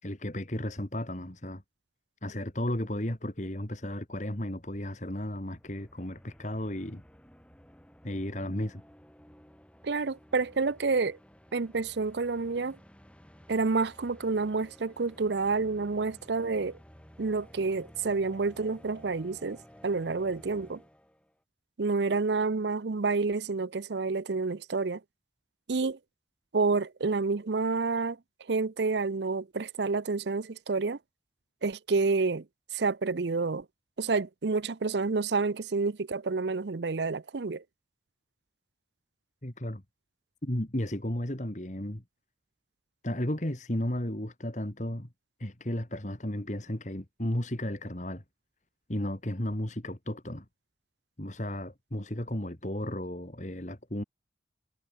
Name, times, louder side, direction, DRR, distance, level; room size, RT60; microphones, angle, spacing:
voice 1, 0.0-1.6 2.2-7.0 8.0-8.8 39.4-39.8 40.4-42.0 43.0-45.1 45.4-48.2 48.9-50.4 51.2-54.0, left 1 dB, 40° left, 2.4 m, -34 dB
sound 1, 4.4-21.3, equal, 5° left, 5.3 m, -55 dB
voice 2, 9.8-11.2 11.5-12.8 13.5-16.8 17.2-20.8 21.8-25.0 25.7-26.0 26.5-28.2 28.5-31.0 31.6-32.4 32.7-33.6 34.0-37.6, right 4 dB, 70° right, 0.7 m, -29 dB
head